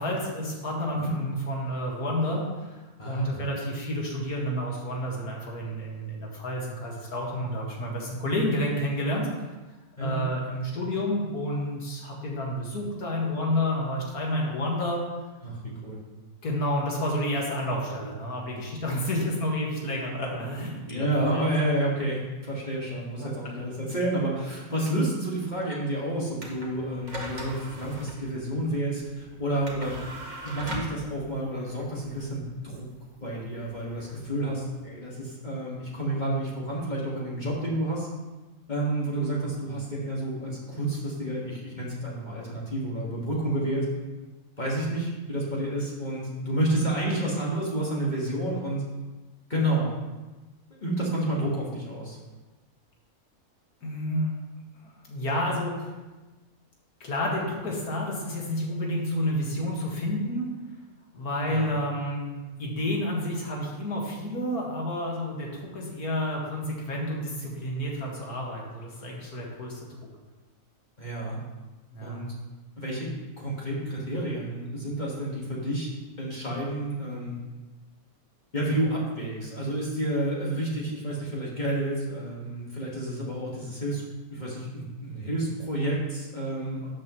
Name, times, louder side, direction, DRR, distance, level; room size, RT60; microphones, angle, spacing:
voice 1, 0.0-9.3 10.0-15.1 16.4-21.4 23.2-23.3 53.8-54.3 54.8-55.9 57.0-60.5 61.1-69.8 71.9-72.3, left 1 dB, 85° left, -2 dB, 2.3 m, -30 dB
voice 2, 3.0-3.4 10.0-10.2 15.4-16.0 20.9-30.0 30.4-32.9 33.2-38.1 38.7-43.9 44.6-48.8 49.5-49.9 50.8-52.2 61.4-61.8 71.0-71.4 72.0-72.3 72.8-73.1 73.4-75.9 76.2-77.4 78.5-84.0 84.3-86.9, right 1 dB, 30° left, -5 dB, 1.9 m, -30 dB
sound 1, 26.4-34.8, right 1 dB, 30° right, 1.5 m, -41 dB
12.5 x 7.6 x 3.1 m, 1.2 s
omnidirectional pair, 1.6 m